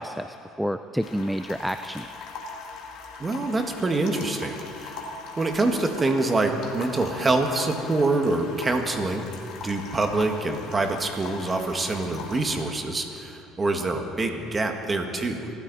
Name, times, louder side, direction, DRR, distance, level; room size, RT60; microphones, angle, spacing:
voice 1, 0.0-2.1, equal, ahead, 9 dB, 0.4 m, -29 dB
sound 1, 1.0-12.6, left 4 dB, 70° left, 2.2 m, -41 dB
voice 2, 3.2-5.0 5.4-9.3 9.6-15.5, right 2 dB, 20° right, 4 dB, 1.6 m, -25 dB
24.0 x 13.5 x 4.1 m, 2.8 s
cardioid pair, 120°, 0 cm